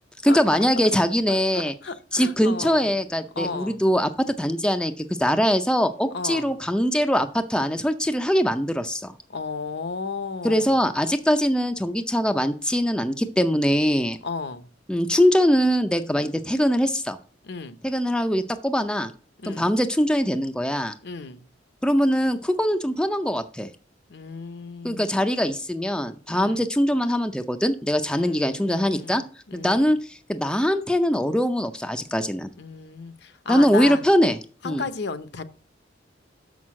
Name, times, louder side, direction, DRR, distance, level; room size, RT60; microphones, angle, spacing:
voice 1, 0.2-1.7 2.1-4.1 4.4-9.1 10.4-14.2 14.9-17.2 17.8-19.1 19.4-20.9 21.8-23.7 24.8-29.2 29.5-32.5 33.5-34.4 34.6-34.8, equal, 5° left, 0.5 m, -22 dB
voice 2, 1.3-3.0 3.3-3.8 6.1-6.5 9.3-10.8 14.2-14.7 17.4-17.8 19.4-19.7 21.0-21.5 24.1-25.2 26.3-26.6 28.1-30.0 32.6-34.0 34.6-35.4, left 4 dB, 60° left, 0.8 m, -34 dB
6.6 x 6.2 x 7.4 m
head